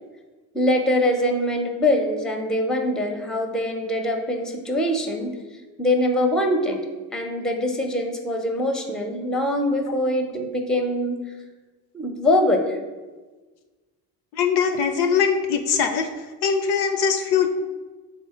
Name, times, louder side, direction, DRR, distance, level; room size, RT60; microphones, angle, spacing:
voice 1, 0.5-5.3 5.8-6.8 7.1-11.2 11.9-12.8, left 1 dB, ahead, 4 dB, 0.6 m, -23 dB
voice 2, 14.4-16.1 16.4-17.5, left 6 dB, 55° left, 7 dB, 0.5 m, -21 dB
3.8 x 2.7 x 4.8 m, 1.3 s
hypercardioid pair, 55°, 48 cm